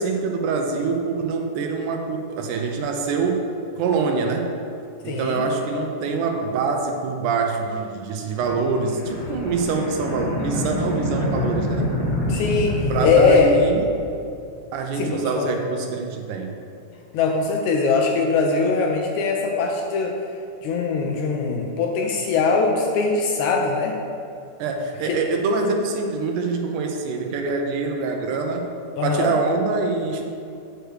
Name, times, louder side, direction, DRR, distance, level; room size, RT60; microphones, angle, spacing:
voice 1, 0.0-3.5 3.8-4.5 5.0-11.9 12.9-13.9 14.7-16.6 24.6-28.7 29.0-30.2, right 4 dB, 80° right, 3 dB, 2.0 m, -25 dB
voice 2, 5.1-5.4 12.3-13.5 15.0-15.5 17.1-20.2 20.6-24.0 25.1-25.2 29.0-29.3, left 4 dB, 80° left, 1 dB, 1.8 m, -21 dB
sound 1, 8.4-14.2, left 1 dB, 45° left, 1.6 m, -26 dB
9.0 x 6.4 x 3.2 m, 2.5 s
omnidirectional pair, 3.7 m